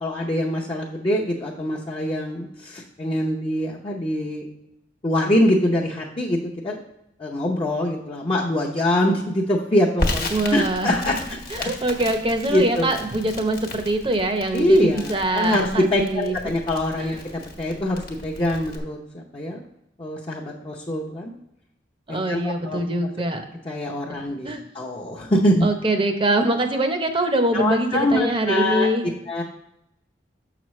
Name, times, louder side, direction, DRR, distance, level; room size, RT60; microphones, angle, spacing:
voice 1, 0.0-4.5 5.0-6.8 7.2-11.7 12.5-12.9 14.5-19.6 20.0-21.3 22.1-22.8 23.6-25.7 27.5-28.9 29.3-29.4, left 1 dB, 30° left, -4 dB, 0.7 m, -24 dB
Crackle, 10.0-18.8, left 1 dB, 55° left, 1.2 m, -34 dB
voice 2, 10.3-10.9 11.5-16.4 17.0-17.1 22.1-23.4 24.1-24.2 24.4-24.6 25.6-29.1, right 1 dB, 30° right, 6 dB, 0.8 m, -23 dB
7.1 x 6.0 x 3.1 m, 0.82 s
head